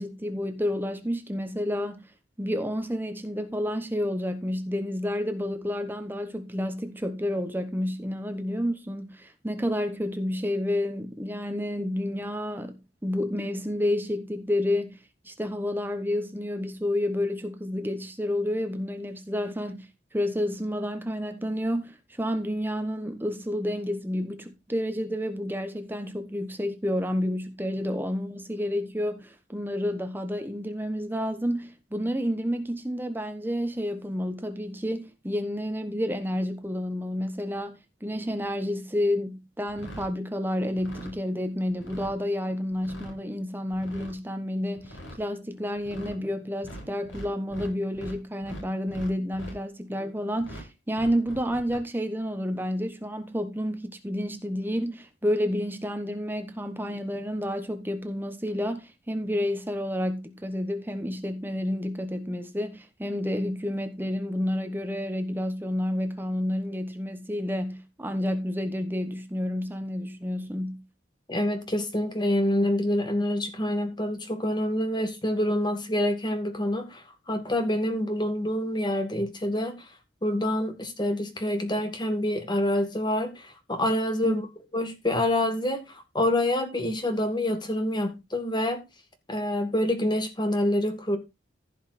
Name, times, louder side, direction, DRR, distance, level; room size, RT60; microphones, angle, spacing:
voice 1, 0.0-2.0 2.4-15.0 15.2-70.8 84.2-84.4, left 1 dB, 10° right, 1.0 m, -30 dB
sound 1, 39.7-40.1 40.7-41.1 41.7-42.1 42.7-43.2 43.7-44.1 44.8-45.2 45.8-46.2 46.6-48.2 48.4-49.6 50.4-50.6 50.9-51.8, equal, 80° left, 5.5 m, -42 dB
voice 2, 71.3-79.8 80.2-84.5 84.7-85.8 86.1-88.8 89.3-91.2, left 1 dB, 20° left, 1.8 m, -27 dB
15.0 x 5.6 x 4.2 m
head